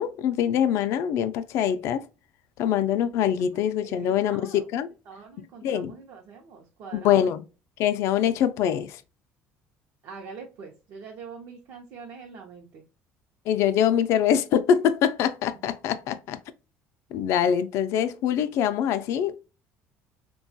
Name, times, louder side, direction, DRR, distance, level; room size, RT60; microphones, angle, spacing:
voice 1, 0.0-2.0 2.6-4.9 5.6-5.9 6.9-7.4 7.8-9.0 13.5-16.4 17.1-19.4, left 9 dB, 70° left, 0.3 m, -24 dB
voice 2, 3.8-4.7 5.1-7.3 10.0-12.8, right 5 dB, 65° right, 0.6 m, -44 dB
2.9 x 2.2 x 2.6 m
cardioid pair, 105°, 5 cm